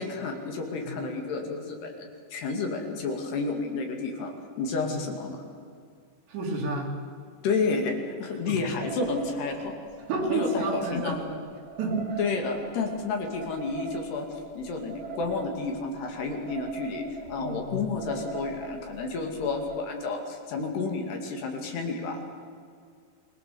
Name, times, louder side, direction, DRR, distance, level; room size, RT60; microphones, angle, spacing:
voice 1, 0.0-5.4 7.4-7.9 8.2-9.7 10.3-11.1 12.2-22.2, left 4 dB, 60° left, 3 dB, 4.2 m, -31 dB
voice 2, 6.3-7.0 8.5-8.7 10.1-11.4 11.8-12.2 17.4-17.8, right 2 dB, 65° right, 0 dB, 5.4 m, -30 dB
sound 1, 8.8-19.8, right 4 dB, 25° right, 2.8 m, -41 dB
28.0 x 21.0 x 7.0 m, 2.1 s
omnidirectional pair, 5.5 m